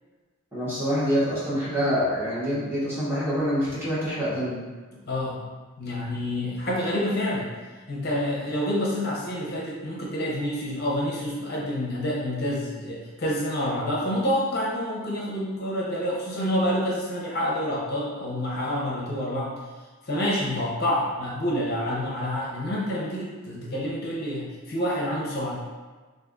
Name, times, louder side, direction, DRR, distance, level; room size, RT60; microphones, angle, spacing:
voice 1, 0.5-4.6, equal, 10° right, -10 dB, 0.8 m, -26 dB
voice 2, 5.0-5.4 5.8-7.5 7.9-19.5 20.1-25.6, left 1 dB, 45° left, -5 dB, 0.6 m, -28 dB
2.5 x 2.4 x 3.7 m, 1.3 s
head